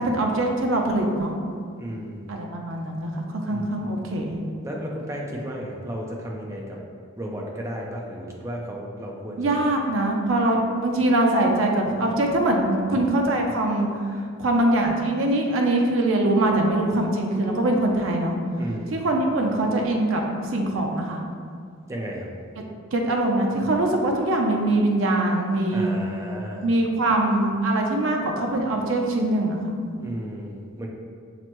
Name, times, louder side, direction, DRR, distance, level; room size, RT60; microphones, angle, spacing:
voice 1, 0.0-1.3 2.3-4.4 9.4-13.9 14.4-18.3 18.9-20.2 20.5-21.2 22.9-25.9 26.6-29.6, right 1 dB, 70° right, 1 dB, 0.5 m, -23 dB
voice 2, 1.8-2.3 3.5-3.9 4.6-6.8 7.2-9.6 18.6-19.0 21.9-22.3 25.7-26.6 30.0-30.9, equal, 15° right, -2 dB, 0.4 m, -34 dB
5.9 x 2.1 x 3.0 m, 2.1 s
head